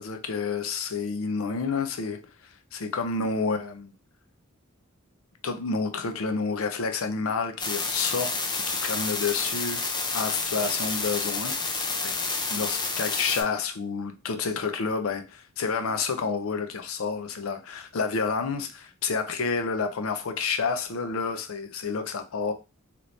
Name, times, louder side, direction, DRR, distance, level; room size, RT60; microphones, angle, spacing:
voice 1, 0.0-2.2 2.7-3.9 5.4-9.8 10.1-11.6 12.0-12.1 12.5-22.5, left 5 dB, 70° left, 0.5 m, -29 dB
sound 1, 7.6-13.4, left 3 dB, 20° left, 0.5 m, -29 dB
3.1 x 3.0 x 2.6 m
head